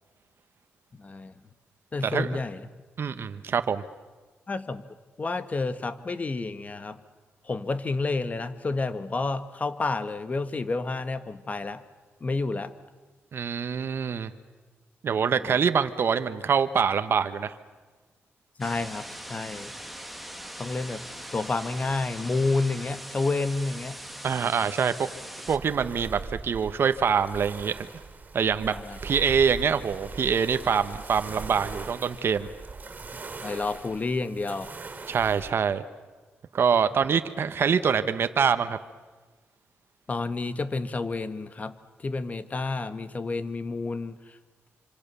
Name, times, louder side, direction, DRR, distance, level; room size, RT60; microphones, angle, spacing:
voice 1, 1.0-1.3 1.9-2.6 4.5-4.8 5.2-7.0 7.5-11.8 12.2-12.7 18.6-19.7 20.6-21.0 21.3-24.0 28.7-29.0 33.4-34.7 40.1-41.7 42.0-44.2, left 3 dB, 35° left, 12 dB, 1.5 m, -30 dB
voice 2, 2.0-2.4 3.0-3.8 13.3-14.3 15.0-17.5 24.2-25.1 25.5-27.9 28.3-28.7 29.0-32.5 35.1-35.8 36.5-38.8, right 6 dB, 60° right, 10 dB, 1.2 m, -25 dB
sound 1, 18.6-25.6, equal, ahead, 1.8 m, -41 dB
sound 2, 25.5-35.5, right 4 dB, 40° right, 3.6 m, -41 dB
26.5 x 26.0 x 7.0 m, 1.3 s
cardioid pair, 100°, 4 cm